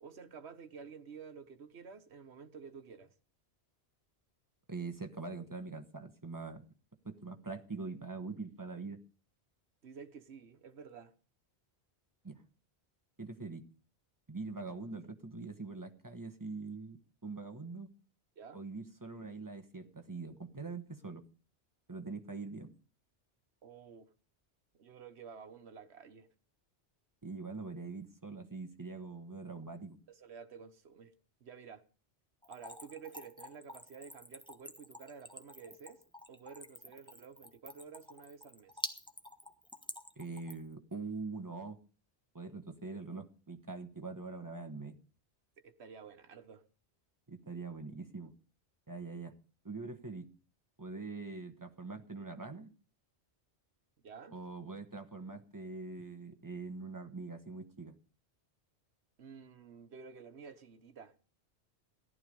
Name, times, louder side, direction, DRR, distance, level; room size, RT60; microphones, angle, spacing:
voice 1, 0.0-3.1 9.8-11.1 18.4-18.6 23.6-24.1 24.7-26.3 30.1-31.1 31.4-31.8 32.5-36.0 36.3-38.8 45.6-46.6 54.0-54.4 59.2-61.1, right 6 dB, 75° right, 1.4 m, -51 dB
voice 2, 4.7-6.6 7.0-9.0 12.2-12.4 13.2-13.7 14.3-17.9 18.5-21.2 21.9-22.7 27.2-30.0 40.2-41.8 42.3-45.0 47.3-48.3 48.9-49.4 49.6-50.3 50.8-52.7 54.3-58.0, right 3 dB, 20° right, 1.2 m, -43 dB
Splash splatter / Trickle dribble, 32.4-40.7, left 1 dB, 5° left, 1.1 m, -47 dB
15.0 x 11.5 x 5.3 m
omnidirectional pair, 1.1 m